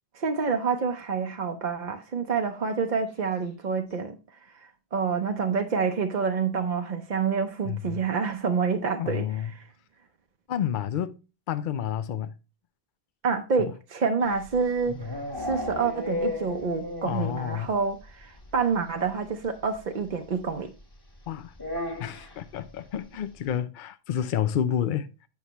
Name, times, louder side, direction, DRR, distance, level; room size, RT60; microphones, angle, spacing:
voice 1, 0.1-4.2 4.9-9.3 9.6-9.7 13.2-20.7, right 5 dB, 50° right, 0.7 m, -27 dB
voice 2, 7.6-8.0 9.0-9.5 10.5-11.2 11.5-12.3 13.6-13.7 17.0-17.7 21.3-21.5 22.0-25.1, left 9 dB, 60° left, 0.6 m, -29 dB
sound 1, 14.3-17.4 17.6-17.7 18.0-18.1 18.4-18.5 19.7-19.8 21.5-22.4, left 2 dB, 20° left, 1.4 m, -33 dB
8.4 x 5.6 x 2.9 m
omnidirectional pair, 1.1 m